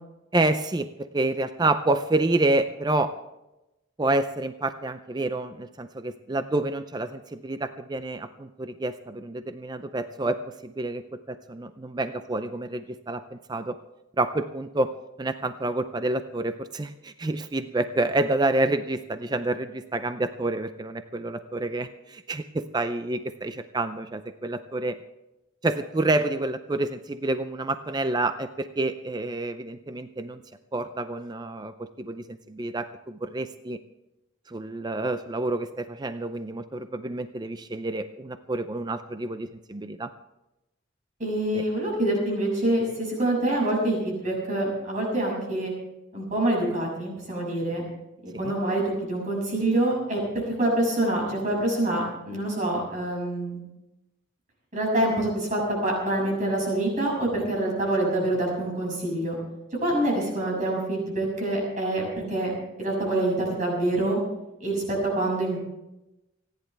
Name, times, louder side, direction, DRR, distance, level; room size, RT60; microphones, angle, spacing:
voice 1, 0.3-3.1 4.0-13.8 14.2-14.9 15.2-25.0 25.6-30.4 30.7-33.8 34.5-40.1 41.5-41.6 48.4-48.5, right 2 dB, 20° right, 10 dB, 0.5 m, -28 dB
voice 2, 41.2-45.7 46.1-47.8 48.2-53.6 54.7-59.3 59.8-62.0 62.3-62.5 62.8-64.2 64.6-65.6, right 1 dB, 40° right, -1 dB, 6.6 m, -26 dB
29.0 x 10.5 x 3.4 m, 0.94 s
head